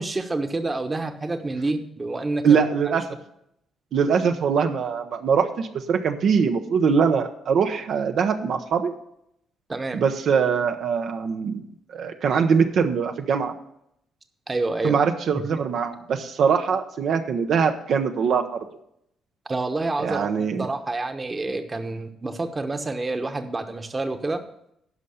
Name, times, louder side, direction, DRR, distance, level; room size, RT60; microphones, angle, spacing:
voice 1, 0.0-3.0 9.7-10.0 14.5-15.0 15.3-15.6 19.5-24.4, right 2 dB, 25° right, 7 dB, 1.1 m, -28 dB
voice 2, 2.4-3.0 3.9-8.9 9.9-11.6 11.9-13.5 14.8-18.4 20.0-20.7, right 6 dB, 65° right, 5 dB, 0.9 m, -22 dB
11.0 x 5.6 x 6.6 m, 0.75 s
cardioid pair, 90°, 0 cm